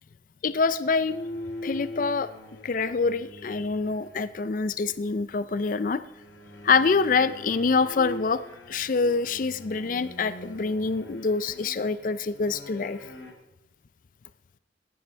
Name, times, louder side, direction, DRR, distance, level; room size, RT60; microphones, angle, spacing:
voice 1, 0.4-1.2 1.6-2.3 2.6-6.0 6.6-8.4 8.7-13.0, left 4 dB, 45° left, 14 dB, 0.4 m, -25 dB
sound 1, 1.1-4.6 5.9-13.3, left 1 dB, 85° left, 2.3 m, -42 dB
15.5 x 11.0 x 4.5 m, 0.95 s
head